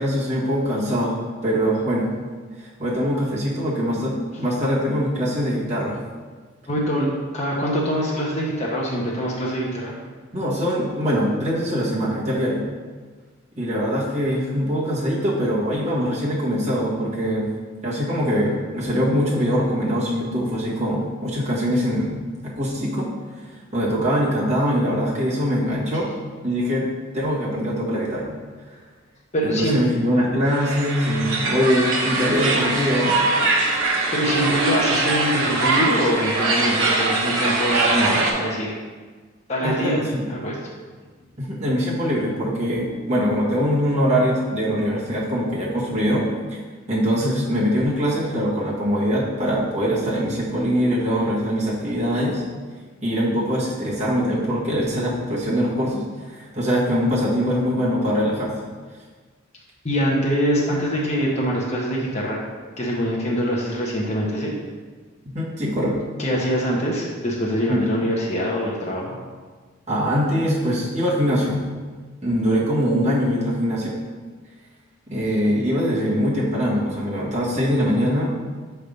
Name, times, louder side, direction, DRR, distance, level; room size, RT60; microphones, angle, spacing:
voice 1, 0.0-2.1 2.6-6.0 10.3-12.7 13.6-17.5 17.8-23.1 23.4-23.5 23.7-26.1 26.4-26.8 27.1-28.4 29.4-33.2 39.6-40.2 41.4-46.6 46.9-52.4 53.0-58.5 65.3-65.9 67.7-67.8 69.9-71.7 72.2-74.0 75.1-78.4, equal, 35° right, -6 dB, 1.5 m, -23 dB
voice 2, 6.7-7.1 7.3-9.9 29.3-29.8 34.1-38.7 39.5-40.0 40.3-40.5 59.8-62.4 62.8-64.5 66.2-69.2, equal, 35° left, -4 dB, 0.8 m, -24 dB
sound 1, 30.5-38.3, right 3 dB, 80° right, 1.0 m, -22 dB
5.5 x 3.4 x 5.2 m, 1.4 s
head